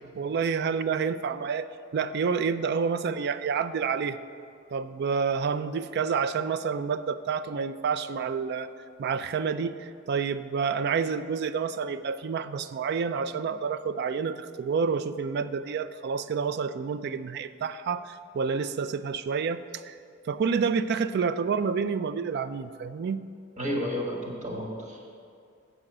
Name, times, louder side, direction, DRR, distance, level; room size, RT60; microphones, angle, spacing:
voice 1, 0.2-1.7 1.9-4.2 4.7-8.7 9.0-20.0 20.3-23.2, right 5 dB, 55° right, 13 dB, 0.3 m, -29 dB
voice 2, 23.6-25.1, equal, 35° right, -2 dB, 1.6 m, -32 dB
7.8 x 4.9 x 7.3 m, 2.4 s
head